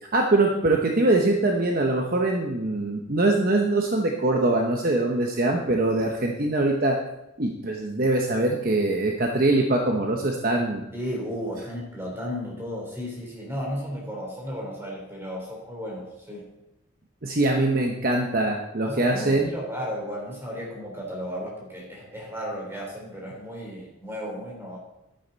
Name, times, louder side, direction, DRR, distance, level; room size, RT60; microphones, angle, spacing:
voice 1, 0.1-7.0 7.4-10.8 17.2-19.5, right 2 dB, 45° right, 2 dB, 0.9 m, -23 dB
voice 2, 10.9-16.5 18.8-24.8, equal, 10° right, -2 dB, 3.5 m, -34 dB
11.5 x 9.9 x 4.0 m, 0.89 s
head